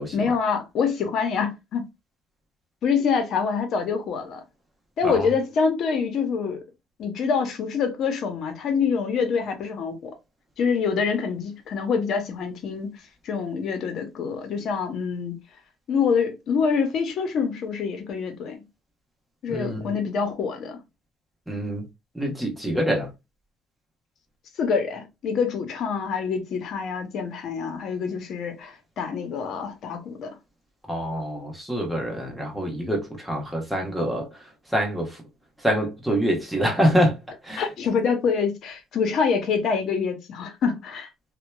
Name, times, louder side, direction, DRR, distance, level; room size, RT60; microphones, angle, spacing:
voice 1, 0.1-1.8 2.8-4.4 5.0-6.6 7.0-10.1 10.6-12.9 13.2-15.4 15.9-18.6 19.4-20.8 24.6-30.4 37.6-41.1, left 6 dB, 60° left, 0.7 m, -26 dB
voice 2, 19.5-20.0 21.5-21.9 22.1-23.1 30.9-34.3 34.7-35.2 35.6-37.2 37.4-37.7, equal, 5° right, 1.0 m, -25 dB
2.8 x 2.2 x 2.2 m
supercardioid pair, 90°, 0 cm